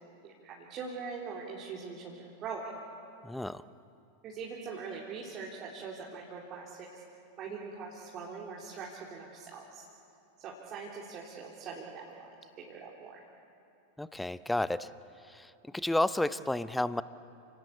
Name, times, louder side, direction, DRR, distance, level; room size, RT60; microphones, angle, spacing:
voice 1, 0.2-2.7 4.2-7.0 7.4-9.9 10.4-13.2, right 5 dB, 30° right, -3 dB, 3.7 m, -42 dB
voice 2, 3.2-3.6 14.0-14.9 15.3-15.5 15.7-17.0, left 1 dB, 5° left, 16 dB, 0.7 m, -31 dB
30.0 x 19.5 x 8.7 m, 2.7 s
figure-of-eight pair, 90°, 0 cm